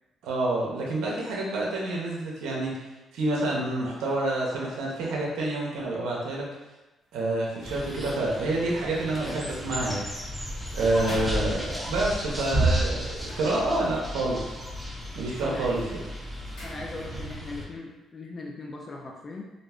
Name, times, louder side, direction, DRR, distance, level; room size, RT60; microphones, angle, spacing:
voice 1, 0.2-2.7 3.1-6.5 7.1-10.0 10.7-14.6 15.2-16.0, right 2 dB, 85° right, -3 dB, 0.6 m, -28 dB
sound 1, 7.0-12.0 13.0-14.2 14.5-15.0 15.3-17.4 17.7-17.8, equal, 90° left, 1.2 m, -46 dB
sound 2, 7.6-17.7, right 1 dB, 5° right, 0.6 m, -32 dB
voice 2, 15.4-15.8 16.6-19.4, left 3 dB, 40° left, 0 dB, 0.3 m, -39 dB
2.5 x 2.2 x 3.4 m, 1.1 s
cardioid pair, 90°, 0 cm